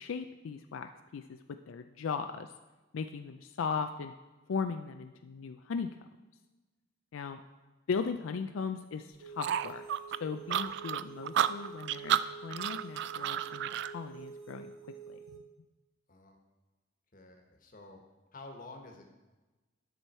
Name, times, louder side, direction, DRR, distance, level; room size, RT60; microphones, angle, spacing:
voice 1, 0.0-2.5 2.9-4.1 4.5-5.9 7.1-7.4 7.9-9.8 10.2-14.7 15.1-15.4, left 5 dB, 85° left, 7 dB, 0.4 m, -37 dB
sound 1, 9.2-15.4, right 6 dB, 85° right, 1.0 m, -48 dB
sound 2, 9.4-13.9, right 9 dB, 60° right, 0.3 m, -31 dB
voice 2, 10.5-10.8 16.1-16.4 17.1-18.0 18.3-19.1, left 2 dB, 45° left, 3 dB, 1.3 m, -50 dB
11.0 x 6.2 x 4.3 m, 1.2 s
head